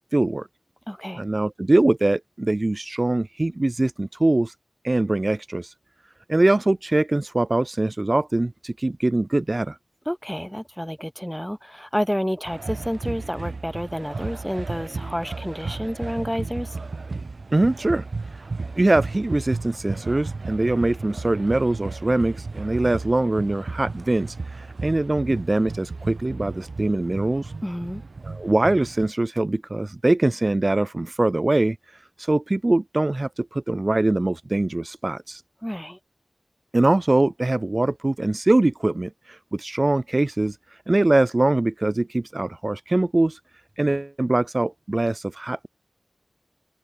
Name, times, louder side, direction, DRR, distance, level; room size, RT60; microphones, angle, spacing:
voice 1, 0.1-0.5 1.2-4.5 4.8-5.7 6.3-9.8 17.5-18.4 18.8-27.5 28.2-31.8 32.2-35.4 36.7-40.6 40.9-43.4 43.8-45.7, right 2 dB, 40° right, 0.6 m, -22 dB
voice 2, 0.9-1.3 10.1-16.8 27.6-28.0 35.6-36.0, equal, 5° left, 1.7 m, -29 dB
sound 1, 12.5-29.1, right 3 dB, 80° right, 3.0 m, -34 dB
wide cardioid pair, 70°, 0 cm